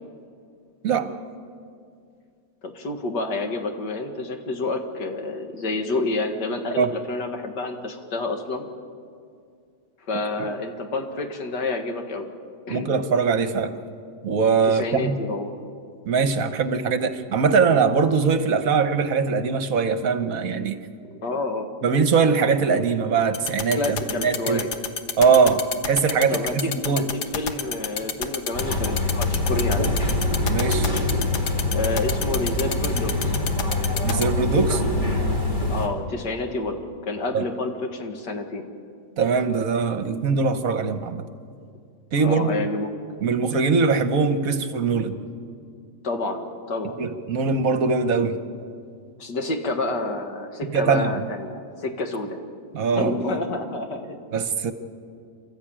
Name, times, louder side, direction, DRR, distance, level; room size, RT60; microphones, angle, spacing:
voice 1, 2.6-8.7 10.1-12.3 12.7-12.9 14.6-15.6 21.0-21.7 23.8-24.7 26.3-29.9 31.7-33.4 35.7-36.8 37.0-38.7 42.2-42.9 46.0-47.0 49.2-52.4 53.0-54.2, left 2 dB, 90° left, 4 dB, 2.4 m, -29 dB
voice 2, 12.7-13.7 14.2-15.2 16.1-20.8 21.8-23.8 24.2-24.6 25.2-27.1 30.5-30.9 34.0-34.8 37.3-37.4 39.2-41.2 42.1-42.5 43.2-45.2 47.0-48.4 50.7-51.3 52.7-53.2 54.3-54.7, right 5 dB, 60° right, 9 dB, 1.4 m, -21 dB
sound 1, 23.3-34.2, left 7 dB, 70° left, 1.6 m, -27 dB
sound 2, 28.5-35.9, left 2 dB, 30° left, 2.3 m, -24 dB
28.5 x 13.0 x 8.9 m, 2.3 s
omnidirectional pair, 1.8 m